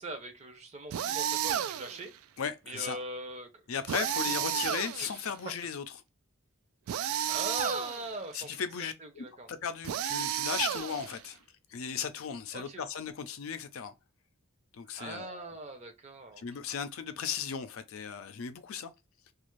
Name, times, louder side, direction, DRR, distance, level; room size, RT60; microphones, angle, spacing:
voice 1, 0.0-2.1 2.7-3.5 4.0-4.4 5.0-5.1 7.0-9.5 12.5-12.8 15.0-16.4, right 1 dB, 30° right, 0.6 m, -41 dB
sound 1, 0.9-2.1 3.9-5.3 6.9-8.2 9.8-11.3, right 10 dB, 85° right, 0.3 m, -32 dB
voice 2, 2.4-3.0 3.7-5.8 8.3-11.4 11.7-13.9 14.7-15.5 16.4-18.9 19.3-19.4, left 7 dB, 80° left, 0.4 m, -36 dB
2.5 x 2.3 x 3.0 m
head